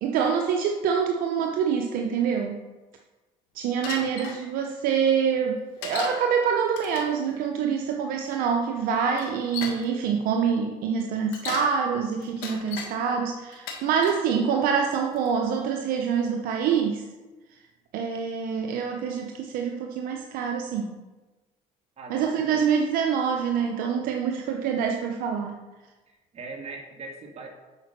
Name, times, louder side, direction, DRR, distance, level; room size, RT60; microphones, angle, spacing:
voice 1, 0.0-2.6 3.5-17.0 17.9-20.9 22.1-25.6, right 7 dB, 75° right, 3 dB, 0.8 m, -26 dB
Bicycle, 3.8-4.4 5.8-6.2 6.7-7.2 8.3-8.4 9.2-9.8 11.1-11.7 12.2-12.9 13.5-14.3 14.9-15.3, left 5 dB, 90° left, 1.6 m, -36 dB
voice 2, 22.0-22.7 26.1-27.6, right 3 dB, 45° right, 1 dB, 2.1 m, -40 dB
8.2 x 5.1 x 6.0 m, 1.2 s
cardioid pair, 95°, 15 cm